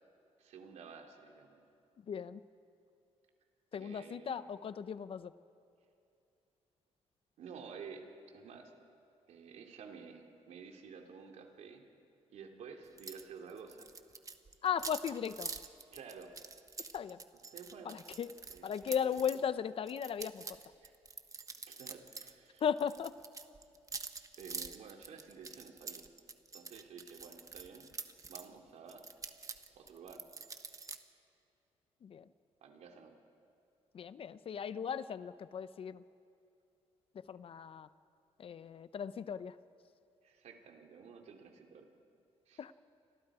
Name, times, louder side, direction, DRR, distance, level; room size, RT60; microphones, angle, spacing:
voice 1, 0.4-1.6 3.7-4.4 7.4-8.0 8.3-8.7 9.3-11.8 12.3-13.9 15.9-16.3 17.5-18.0 18.5-19.2 20.8-20.9 21.6-22.6 24.4-26.0 26.5-27.9 28.3-29.0 29.7-30.2 32.6-33.1 40.2-41.9 42.5-42.6, right 6 dB, 75° right, 3 dB, 2.9 m, -51 dB
voice 2, 2.1-2.4 3.7-5.3 14.6-15.5 16.9-17.2 17.8-20.6 22.6-23.1 32.0-32.2 33.9-36.0 37.3-37.9 38.4-39.6 42.6-42.7, left 7 dB, 55° left, 14 dB, 0.8 m, -37 dB
sound 1, 13.0-13.2 13.5-19.4 19.9-22.3 22.6-28.5 28.9-31.0, right 4 dB, 30° right, 1.3 m, -46 dB
29.5 x 26.0 x 5.0 m, 2.6 s
cardioid pair, 100°, 12 cm